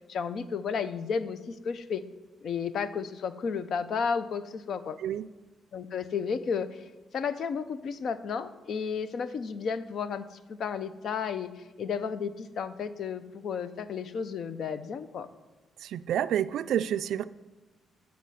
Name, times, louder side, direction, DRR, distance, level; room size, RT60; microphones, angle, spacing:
voice 1, 0.1-2.0 2.4-5.0 5.7-15.3, left 6 dB, 55° left, 13 dB, 0.5 m, -33 dB
voice 2, 15.8-17.3, right 10 dB, 75° right, 14 dB, 0.3 m, -29 dB
11.0 x 4.2 x 7.6 m, 1.2 s
cardioid pair, 160°, 0 cm